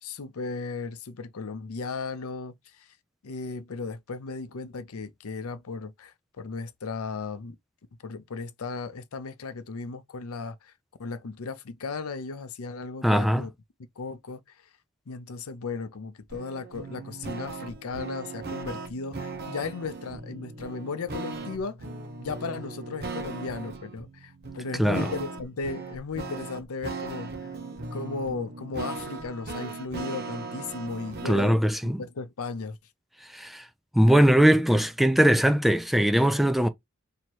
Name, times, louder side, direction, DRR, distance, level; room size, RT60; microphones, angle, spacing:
voice 1, 0.0-2.9 3.2-7.6 8.0-10.7 11.0-13.5 14.0-14.4 15.1-21.8 22.2-27.3 27.9-32.8, left 4 dB, 80° left, 0.6 m, -36 dB
voice 2, 13.0-13.5 24.7-25.1 31.2-32.0 33.3-33.7 33.9-36.7, equal, ahead, 0.4 m, -21 dB
sound 1, 16.3-31.6, right 3 dB, 50° right, 0.9 m, -38 dB
3.0 x 2.8 x 4.5 m
head